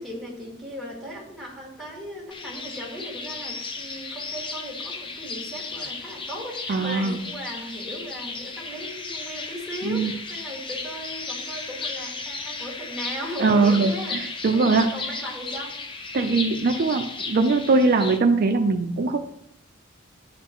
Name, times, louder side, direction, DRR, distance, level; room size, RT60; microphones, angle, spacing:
voice 1, 0.0-15.8, equal, ahead, -4 dB, 2.0 m, -37 dB
sound 1, 2.3-18.2, left 4 dB, 25° left, 0.5 m, -35 dB
voice 2, 6.7-7.2 9.8-10.1 13.4-14.9 16.1-19.2, right 3 dB, 50° right, 5 dB, 0.4 m, -21 dB
11.0 x 4.2 x 3.0 m, 0.74 s
head